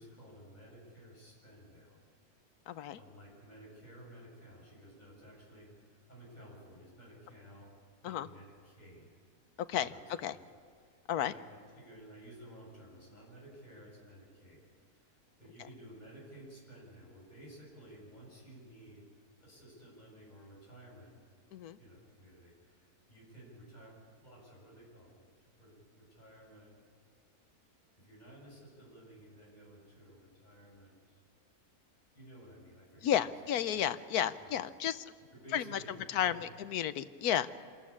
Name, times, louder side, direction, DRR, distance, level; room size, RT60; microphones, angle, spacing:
voice 1, 0.0-2.0 3.0-7.7 8.0-9.2 9.7-10.0 10.3-10.4 10.8-14.6 15.0-19.0 19.4-21.2 21.8-25.3 25.6-26.8 28.0-31.2 32.1-33.3 33.7-33.8 34.2-34.5 35.3-36.4, right 1 dB, 30° left, -5 dB, 7.3 m, -54 dB
voice 2, 2.7-3.0 8.0-8.3 9.6-9.9 10.2-10.4 11.1-11.3 21.5-21.8 33.0-35.1 35.5-35.8 36.1-37.5, left 10 dB, 85° left, 14 dB, 1.3 m, -32 dB
26.5 x 13.5 x 8.6 m, 2.1 s
omnidirectional pair, 1.6 m